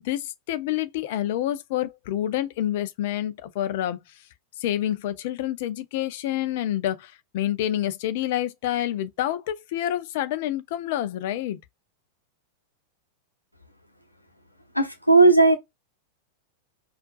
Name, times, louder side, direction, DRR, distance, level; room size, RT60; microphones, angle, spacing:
voice 1, 0.0-4.0 4.6-11.6, left 12 dB, 50° left, 0.5 m, -28 dB
voice 2, 14.7-15.6, right 3 dB, 90° left, 0.8 m, -16 dB
4.4 x 2.4 x 2.4 m
figure-of-eight pair, 90°, 0 cm